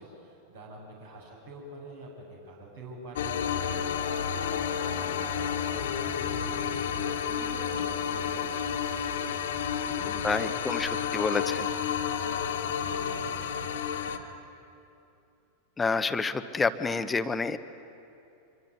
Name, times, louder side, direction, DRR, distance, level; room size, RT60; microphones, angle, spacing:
voice 1, 0.0-4.7 5.2-9.2 9.8-11.3 12.0-12.4 12.7-14.2, right 1 dB, 65° right, -2 dB, 7.6 m, -46 dB
sound 1, 3.1-14.2, left 7 dB, 60° left, 1.8 m, -31 dB
voice 2, 10.2-11.7 15.8-17.6, left 4 dB, 15° left, 10 dB, 1.1 m, -28 dB
26.0 x 23.5 x 9.6 m, 2.7 s
figure-of-eight pair, 90°, 0 cm